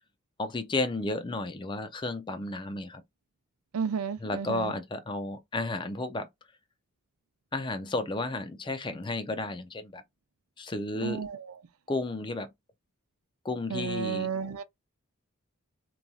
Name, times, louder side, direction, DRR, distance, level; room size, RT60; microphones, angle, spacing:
voice 1, 0.4-3.0 4.2-6.3 7.5-10.0 10.6-11.2 11.9-12.5 13.4-14.3, left 2 dB, 20° left, 0.4 m, -32 dB
voice 2, 3.7-4.7 11.0-11.6 13.7-14.6, right 6 dB, 85° right, 0.5 m, -32 dB
3.0 x 2.6 x 2.3 m
head